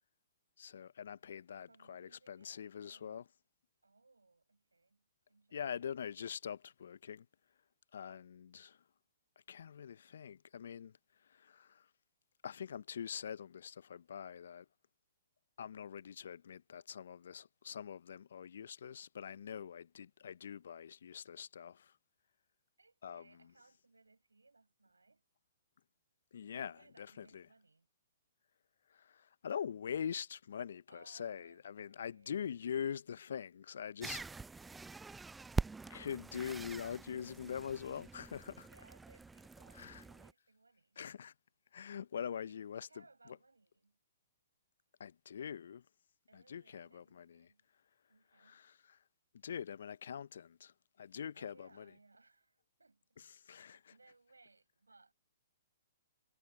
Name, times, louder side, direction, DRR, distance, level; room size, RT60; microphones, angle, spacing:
voice 1, 0.6-3.2 5.5-7.3 7.9-8.8 9.5-10.9 11.3-11.9 12.4-14.7 15.6-21.9 23.0-23.5 26.3-27.5 28.9-34.2 35.9-38.7 39.8-40.0 41.0-41.3 41.7-42.9 43.3-43.4 45.0-45.8 46.3-47.5 48.4-49.0 49.4-51.9 53.2-53.8, left 8 dB, 65° left, 0.5 m, -44 dB
voice 2, 1.1-3.3 3.8-5.9 22.8-25.2 26.5-27.9 30.9-32.4 38.0-38.1 38.6-41.0 42.3-44.0 46.3-47.7 48.1-48.7 51.3-53.2 53.5-55.1, right 3 dB, 90° right, 6.7 m, -66 dB
sound 1, 34.0-40.3, right 4 dB, 10° right, 0.4 m, -44 dB
figure-of-eight pair, 125°, 0 cm